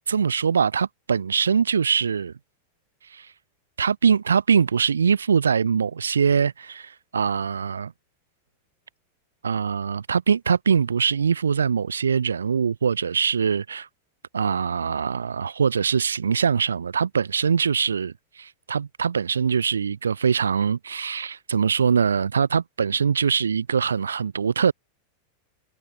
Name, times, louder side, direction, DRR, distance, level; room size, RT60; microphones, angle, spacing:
voice 1, 0.1-2.3 3.1-3.3 3.8-7.9 9.4-13.9 14.3-24.7, right 6 dB, 70° right, 0.4 m, -23 dB
figure-of-eight pair, 90°, 0 cm